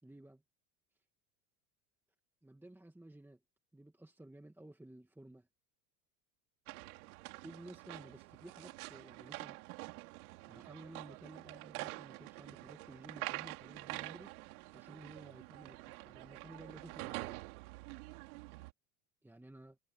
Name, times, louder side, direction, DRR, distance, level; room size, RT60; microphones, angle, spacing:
voice 1, 0.0-0.4 2.4-3.4 3.7-5.5 7.4-9.6 10.5-14.3 14.7-17.4 19.2-19.8, right 1 dB, 5° right, 2.1 m, -54 dB
sound 1, 6.7-18.7, right 22 dB, 85° right, 3.3 m, -47 dB
supercardioid pair, 115°, 43 cm